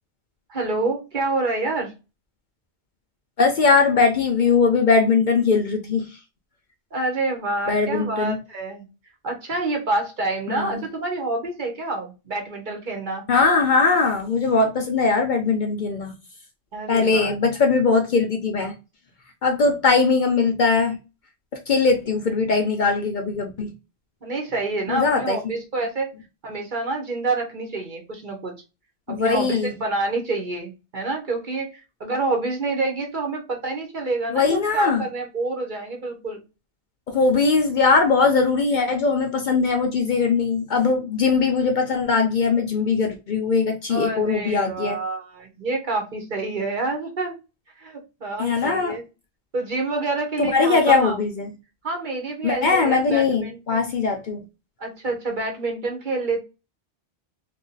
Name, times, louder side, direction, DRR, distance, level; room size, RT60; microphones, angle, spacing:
voice 1, 0.5-1.9 6.9-8.8 9.2-13.2 16.7-17.3 24.2-26.1 26.4-28.5 29.1-36.4 43.9-47.4 47.8-49.0 49.5-51.2 51.8-53.8 54.8-56.4, right 3 dB, 50° right, 1.1 m, -27 dB
voice 2, 3.4-6.1 7.7-8.4 10.5-10.8 13.3-16.2 16.9-18.7 19.4-21.0 21.7-23.7 24.9-25.4 29.1-29.7 34.3-35.0 37.1-45.0 48.4-49.0 50.4-51.5 52.4-54.4, left 4 dB, 55° left, 0.6 m, -20 dB
2.7 x 2.5 x 3.8 m
omnidirectional pair, 1.1 m